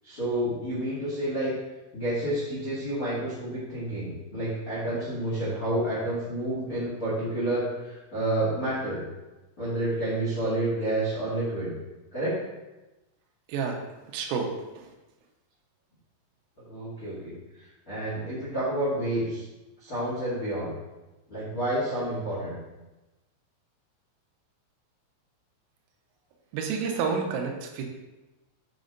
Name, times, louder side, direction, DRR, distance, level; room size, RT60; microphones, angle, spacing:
voice 1, 0.0-1.5 1.9-9.0 9.6-11.7 12.1-12.4 16.7-17.3 17.9-19.4 19.8-20.7 21.3-22.6, right 1 dB, 65° left, -8 dB, 0.8 m, -29 dB
voice 2, 13.5-13.8 14.1-14.9 26.5-27.8, right 5 dB, 85° right, 2 dB, 3.6 m, -29 dB
9.1 x 5.2 x 3.9 m, 1.1 s
omnidirectional pair, 5.8 m